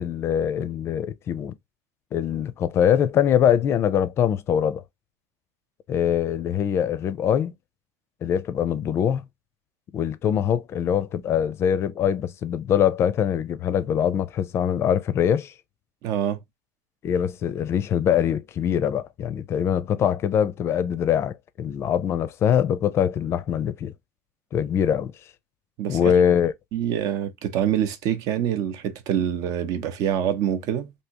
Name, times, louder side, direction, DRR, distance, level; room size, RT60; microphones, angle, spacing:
voice 1, 0.0-1.6 2.1-4.8 5.9-7.5 8.2-9.2 9.9-15.5 17.0-23.9 24.5-25.1 25.9-26.5, left 9 dB, 35° left, 0.5 m, -23 dB
voice 2, 16.0-16.4 25.8-26.2 26.7-30.9, right 10 dB, 60° right, 0.7 m, -25 dB
3.5 x 2.7 x 2.8 m
cardioid pair, 140°, 7 cm